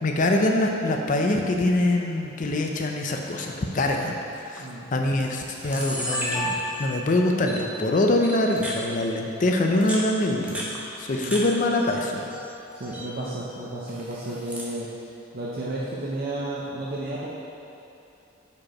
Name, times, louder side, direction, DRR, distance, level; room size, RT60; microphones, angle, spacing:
voice 1, 0.0-4.2 4.4-4.6 4.9-10.6 11.0-12.2, left 1 dB, 40° left, 2 dB, 0.5 m, -24 dB
Camera, 4.3-4.6 5.2-5.3 5.5-7.0 7.5-7.6 8.2-8.8 9.6-11.4 11.7-12.4 12.7-13.1 13.9-14.7, equal, 5° right, 0.7 m, -32 dB
voice 2, 4.6-4.9 11.1-11.3 12.7-15.1 15.3-17.3, right 1 dB, 50° right, -6 dB, 0.6 m, -32 dB
5.2 x 4.5 x 4.2 m, 2.8 s
head